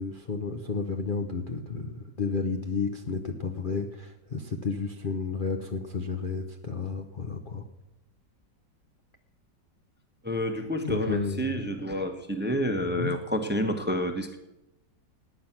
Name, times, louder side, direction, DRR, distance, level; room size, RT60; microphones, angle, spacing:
voice 1, 0.0-7.6 10.8-11.6 12.9-13.1, left 4 dB, 40° left, 4 dB, 0.8 m, -32 dB
voice 2, 10.2-14.4, equal, 5° right, 7 dB, 0.9 m, -29 dB
18.0 x 9.3 x 6.0 m, 0.95 s
omnidirectional pair, 2.0 m